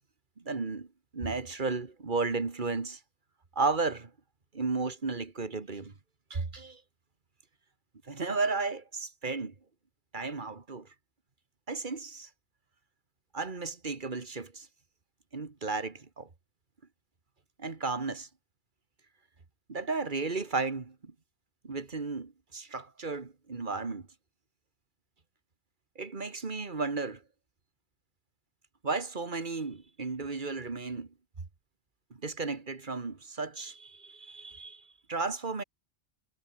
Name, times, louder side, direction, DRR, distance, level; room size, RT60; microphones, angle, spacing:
voice 1, 0.4-0.9 1.1-3.0 3.6-4.1 4.5-5.9 6.3-6.8 8.1-9.5 10.1-10.9 11.7-12.3 13.3-14.7 15.3-16.3 17.6-18.3 19.7-21.1 21.6-24.1 26.0-27.2 28.8-31.1 32.1-35.6, right 4 dB, 50° right, 2.0 m, -34 dB
omnidirectional pair, 1.1 m